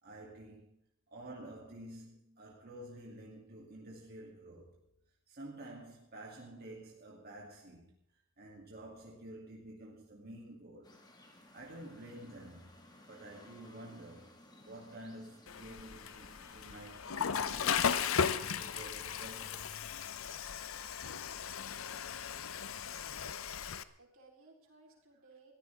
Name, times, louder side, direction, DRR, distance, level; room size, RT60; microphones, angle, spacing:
voice 1, 0.0-0.8 1.1-4.8 5.3-7.9 8.4-11.0 11.5-14.3 14.6-18.1 18.4-19.8, right 1 dB, 50° right, 2.8 m, -50 dB
sound 1, 10.8-18.8, left 1 dB, 20° left, 2.0 m, -59 dB
Water / Toilet flush, 15.5-23.8, left 7 dB, 75° left, 0.7 m, -36 dB
voice 2, 22.4-23.7 24.0-25.5, right 3 dB, 75° right, 4.0 m, -62 dB
21.0 x 15.0 x 3.6 m
head